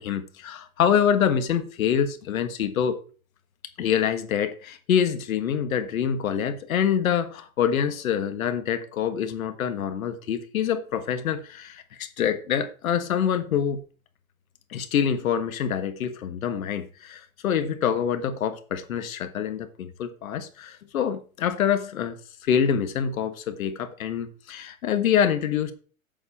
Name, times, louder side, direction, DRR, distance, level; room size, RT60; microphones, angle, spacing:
voice 1, 0.0-3.0 3.8-13.8 14.7-22.2 22.4-25.7, left 8 dB, 70° left, 1.5 m, -26 dB
8.0 x 7.5 x 4.3 m
hypercardioid pair, 120°, 43 cm